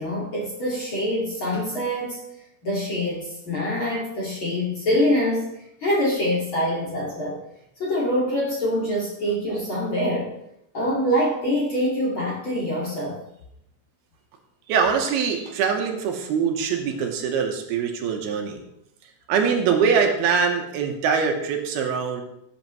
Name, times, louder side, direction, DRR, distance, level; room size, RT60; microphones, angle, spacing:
voice 1, 0.0-2.2 2.6-5.5 5.8-7.4 7.8-10.3 10.7-13.2, equal, 40° left, -5 dB, 2.2 m, -25 dB
voice 2, 14.7-18.6 19.3-22.2, right 6 dB, 75° right, 3 dB, 2.9 m, -23 dB
17.5 x 8.5 x 3.1 m, 0.80 s
omnidirectional pair, 4.7 m